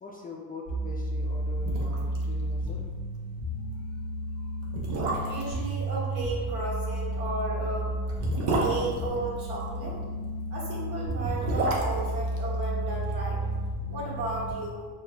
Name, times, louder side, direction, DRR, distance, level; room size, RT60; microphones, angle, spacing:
voice 1, 0.0-2.8, left 4 dB, 25° left, -2 dB, 0.3 m, -43 dB
sound 1, 0.7-14.5, right 1 dB, 45° right, 1.0 m, -32 dB
sound 2, 1.2-1.3 1.6-2.2 2.5-2.6 3.0-3.2 3.9-4.0 4.6-5.6 7.1-9.8 11.0-13.3 13.5-13.6, right 2 dB, 85° right, 0.7 m, -30 dB
voice 2, 5.2-7.9 8.6-10.0 10.5-13.4 13.9-14.9, right 2 dB, 65° right, -5 dB, 1.4 m, -34 dB
4.7 x 2.5 x 2.2 m, 1.5 s
supercardioid pair, 85°, 42 cm